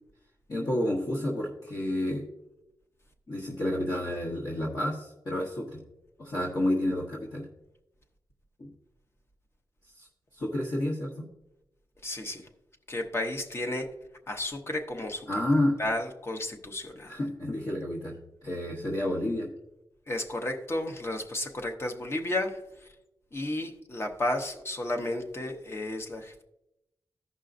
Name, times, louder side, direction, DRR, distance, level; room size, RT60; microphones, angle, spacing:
voice 1, 0.5-2.2 3.3-5.8 6.2-7.5 8.6-8.7 10.0-10.1 10.3-11.2 15.3-15.8 17.1-19.5, left 1 dB, 45° left, -4 dB, 1.3 m, -30 dB
voice 2, 12.0-12.4 12.9-13.9 14.3-15.3 15.8-17.1 20.1-22.6 23.3-26.4, left 1 dB, 30° left, 4 dB, 0.9 m, -32 dB
15.0 x 5.5 x 2.6 m, 0.89 s
wide cardioid pair, 150°, 9 cm